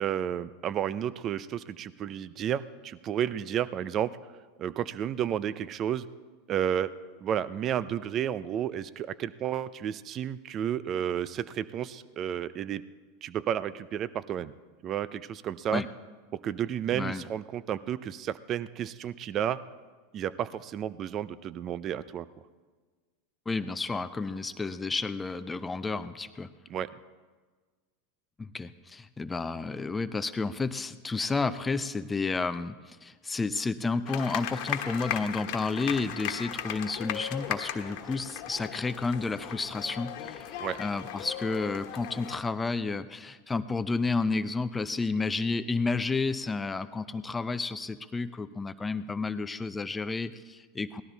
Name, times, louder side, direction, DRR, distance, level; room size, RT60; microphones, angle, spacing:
voice 1, 0.0-4.2 4.6-6.1 6.5-6.9 7.2-12.8 13.2-14.5 14.8-15.8 16.3-19.6 20.1-22.3 26.7-26.9 40.6-40.8, right 10 dB, 40° right, 16 dB, 0.5 m, -32 dB
voice 2, 16.9-17.2 23.5-26.5 28.4-51.0, left 3 dB, 15° left, 12 dB, 0.6 m, -31 dB
sound 1, 34.0-42.4, left 10 dB, 60° left, 1.4 m, -37 dB
18.0 x 12.5 x 4.0 m, 1.4 s
hypercardioid pair, 100°, 0 cm